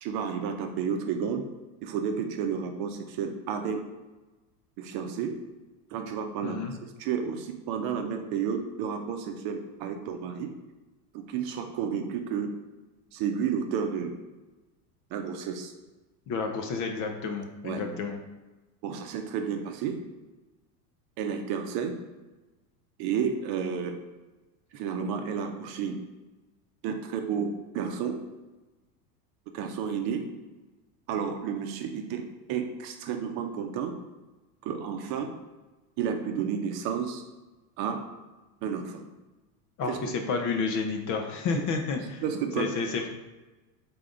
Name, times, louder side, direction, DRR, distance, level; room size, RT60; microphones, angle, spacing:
voice 1, 0.0-1.4 1.8-3.8 4.8-5.4 5.9-6.6 7.0-10.5 11.1-12.5 13.1-14.1 15.1-15.7 17.6-18.0 18.8-20.0 21.2-22.0 23.0-24.0 24.7-26.0 26.8-28.2 29.5-30.3 31.1-33.9 34.6-35.3 36.0-37.2 37.8-38.0 38.6-39.0 39.9-40.0 42.2-42.7, right 7 dB, 50° right, 5 dB, 0.7 m, -31 dB
voice 2, 6.4-6.7 16.3-18.2 39.8-42.2 42.6-43.1, left 4 dB, 40° left, 4 dB, 0.6 m, -30 dB
3.8 x 3.4 x 3.8 m, 1.2 s
hypercardioid pair, 105°, 50 cm